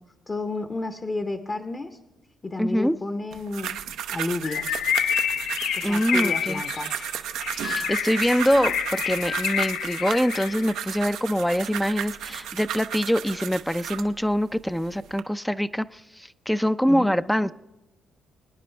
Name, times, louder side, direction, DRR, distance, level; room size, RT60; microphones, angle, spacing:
voice 1, 0.3-2.0 2.4-3.7 4.1-4.8 5.7-7.0 8.6-8.7 16.8-17.1, left 2 dB, 30° left, 7 dB, 0.9 m, -31 dB
voice 2, 2.6-3.0 5.8-6.6 7.5-17.5, equal, 5° left, 15 dB, 0.5 m, -24 dB
sound 1, 3.3-14.1 14.7-15.2, right 10 dB, 90° right, 0.7 m, -34 dB
Bird, 4.4-10.7, left 9 dB, 75° left, 0.4 m, -28 dB
24.5 x 9.9 x 3.4 m, 1.0 s
cardioid pair, 90°, 0 cm